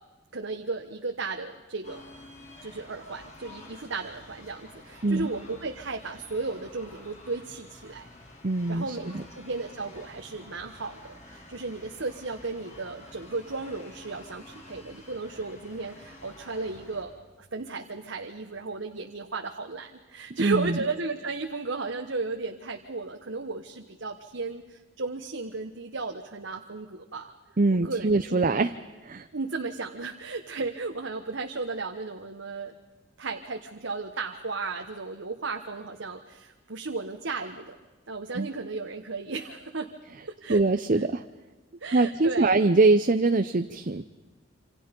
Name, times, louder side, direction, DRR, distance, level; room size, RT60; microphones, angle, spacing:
voice 1, 0.3-2.0 2.6-8.1 8.7-17.2 17.5-27.3 27.8-28.5 29.3-32.7 33.2-37.8 38.1-39.9 40.2-40.6 41.8-42.6, right 3 dB, 70° right, 3 dB, 1.3 m, -35 dB
sound 1, 1.8-17.0, left 1 dB, 40° left, 5.6 m, -49 dB
voice 2, 8.4-9.2 20.4-20.8 27.6-28.7 29.0-29.3 38.3-38.5 40.5-41.2 41.9-44.0, right 3 dB, 45° right, 9 dB, 0.7 m, -23 dB
28.0 x 26.0 x 5.4 m, 1.2 s
head